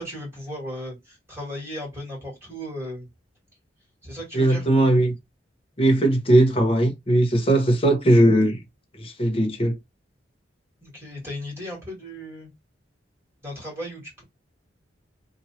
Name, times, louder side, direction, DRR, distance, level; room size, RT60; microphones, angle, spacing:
voice 1, 0.0-3.1 4.0-4.7 10.8-12.5 13.4-14.2, equal, 15° right, 1.9 m, -36 dB
voice 2, 4.3-5.1 5.8-8.6 8.9-9.8, right 1 dB, 30° left, 0.8 m, -19 dB
3.0 x 2.6 x 2.7 m
head